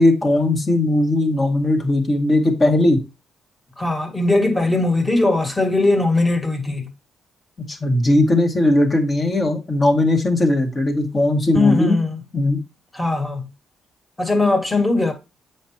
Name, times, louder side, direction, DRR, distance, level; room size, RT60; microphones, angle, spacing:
voice 1, 0.0-3.0 7.7-12.0 12.3-12.6, left 1 dB, 35° left, 2.0 m, -18 dB
voice 2, 3.8-6.9 11.5-12.2 12.9-13.4 14.2-15.1, left 2 dB, 15° left, 2.0 m, -19 dB
7.2 x 5.3 x 2.9 m
cardioid pair, 90°, 0 cm